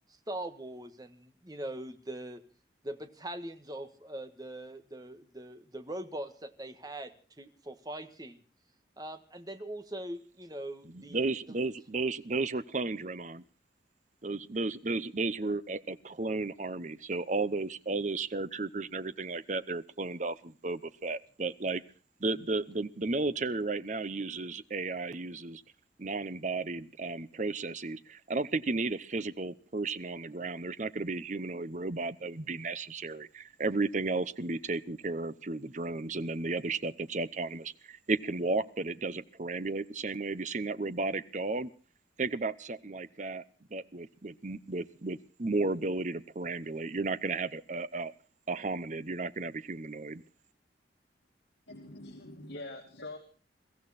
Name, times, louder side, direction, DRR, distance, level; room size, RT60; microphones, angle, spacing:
voice 1, 0.1-2.4 2.8-8.4 9.0-11.3, right 1 dB, 20° right, 8 dB, 1.5 m, -42 dB
voice 2, 10.9-13.4 14.2-21.8 22.2-25.6 26.0-41.7 42.2-43.4 43.7-48.1 48.5-50.2, right 3 dB, 40° right, 14 dB, 0.8 m, -34 dB
voice 3, 51.7-53.2, left 2 dB, 80° left, 2 dB, 2.5 m, -44 dB
22.5 x 15.0 x 4.2 m, 0.38 s
head